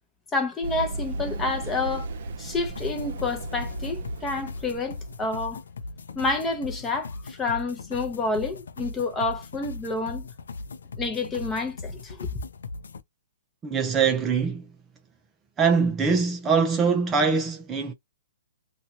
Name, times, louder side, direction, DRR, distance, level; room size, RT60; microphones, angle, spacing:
voice 1, 0.3-2.1 2.4-5.6 6.1-10.3 11.0-12.3, left 3 dB, 15° left, 0.7 m, -29 dB
Run, 0.6-5.4, right 2 dB, 60° right, 0.6 m, -34 dB
sound 1, 2.7-13.0, left 3 dB, 80° left, 0.5 m, -39 dB
voice 2, 13.6-14.7 15.6-17.9, right 5 dB, 15° right, 0.5 m, -23 dB
2.8 x 2.3 x 2.8 m
hypercardioid pair, 145°, 0 cm